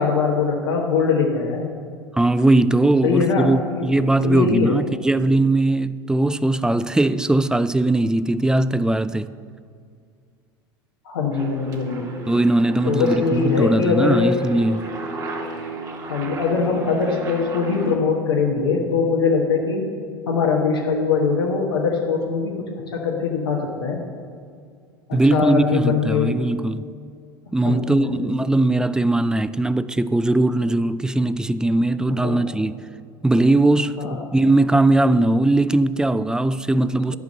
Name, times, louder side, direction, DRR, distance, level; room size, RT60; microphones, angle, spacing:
voice 1, 0.0-1.7 3.0-4.8 11.0-12.2 12.8-14.3 16.0-19.9 20.3-24.0 25.1-26.3 27.6-28.3 32.2-32.5 34.0-34.2, left 5 dB, 80° left, 1.2 m, -22 dB
voice 2, 2.1-9.3 12.3-14.9 25.1-26.9 27.5-32.7 33.2-37.2, right 2 dB, 5° right, 0.3 m, -19 dB
Aircraft, 11.3-18.0, right 2 dB, 30° right, 2.0 m, -34 dB
12.0 x 5.2 x 6.5 m
hypercardioid pair, 80°, 12 cm